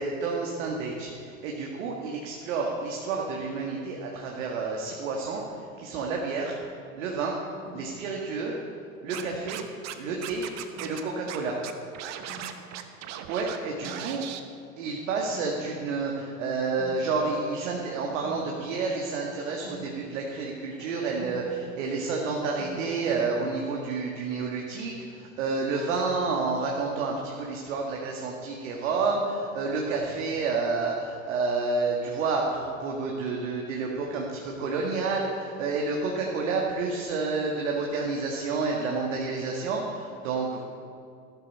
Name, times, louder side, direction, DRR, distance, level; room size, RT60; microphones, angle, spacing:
voice 1, 0.0-6.6 6.9-7.4 7.7-8.6 9.0-9.6 10.0-10.5 10.8-11.6 13.3-14.2 14.8-40.6, right 4 dB, 60° right, -1 dB, 1.8 m, -30 dB
sound 1, 7.7-9.5 10.7-11.0 11.4-11.6 12.1-12.5 12.8-13.2 13.6-14.0 15.2-16.0 16.8-18.5 18.8-21.4 21.9-23.4, equal, 85° left, 3.6 m, -47 dB
Scratching (performance technique), 9.1-9.9 10.2-11.0 11.3-11.4 11.6-13.6 13.8-14.4, right 11 dB, 40° right, 1.1 m, -37 dB
14.5 x 12.5 x 4.3 m, 2.4 s
figure-of-eight pair, 80°, 43 cm